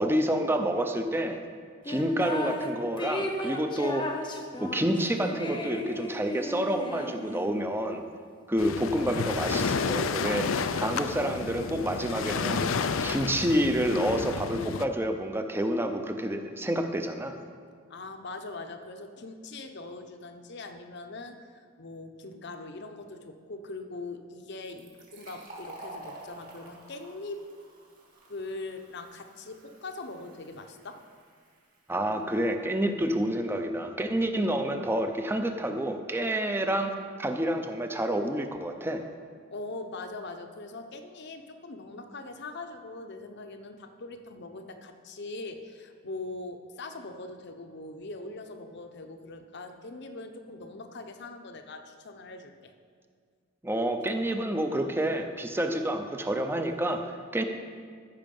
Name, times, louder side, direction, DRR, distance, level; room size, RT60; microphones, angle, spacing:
voice 1, 0.0-1.4 1.9-4.1 4.6-8.0 8.5-10.5 10.8-12.6 13.0-17.3 31.9-36.9 37.2-39.0 53.6-57.4, right 1 dB, 10° right, 6 dB, 0.6 m, -28 dB
sound 1, 1.9-2.7 3.0-7.6, left 1 dB, 25° left, 0.9 m, -35 dB
Waves surf, 8.6-14.8, left 5 dB, 75° left, 0.5 m, -30 dB
voice 2, 17.9-27.4 28.3-31.0 39.5-52.7, left 2 dB, 55° left, 6 dB, 0.8 m, -41 dB
Fill (with liquid), 24.6-32.0, right 2 dB, 45° right, 2.4 m, -49 dB
14.0 x 5.8 x 5.4 m, 2.1 s
head